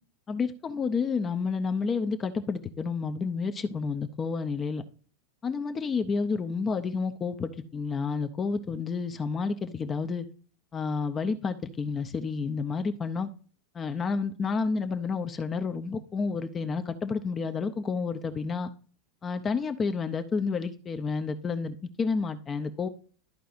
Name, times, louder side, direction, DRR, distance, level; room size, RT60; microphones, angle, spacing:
voice 1, 0.3-4.8 5.4-10.3 10.7-13.3 13.7-18.7 19.2-22.9, left 5 dB, 20° left, 8 dB, 0.6 m, -30 dB
13.0 x 4.6 x 2.5 m, 0.41 s
supercardioid pair, 155°, 0 cm